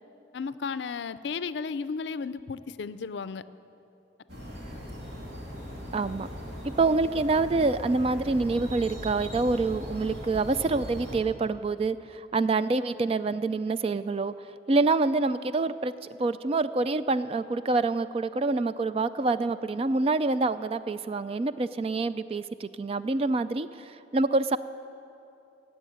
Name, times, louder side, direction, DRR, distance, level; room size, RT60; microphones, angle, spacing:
voice 1, 0.3-3.5, left 5 dB, 75° left, 15 dB, 0.4 m, -34 dB
sound 1, 4.3-11.2, equal, 70° right, 2.6 m, -39 dB
voice 2, 5.9-6.3 6.8-14.3 14.7-15.9 16.2-24.6, right 3 dB, 30° right, 13 dB, 0.3 m, -26 dB
16.5 x 7.5 x 9.3 m, 2.8 s
head